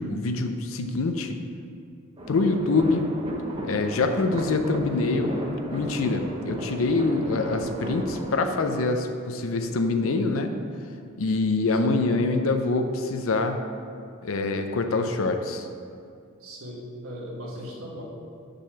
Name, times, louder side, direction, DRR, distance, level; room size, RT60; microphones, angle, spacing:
voice 1, 0.0-1.4 2.3-3.1 3.6-5.3 5.7-10.5 11.2-13.6 14.2-15.7, left 3 dB, 75° left, 6 dB, 0.5 m, -25 dB
sound 1, 2.2-8.4, right 1 dB, 25° right, 0.9 m, -34 dB
voice 2, 16.4-18.0, equal, 90° right, -3 dB, 1.4 m, -38 dB
6.6 x 3.9 x 6.2 m, 2.4 s
head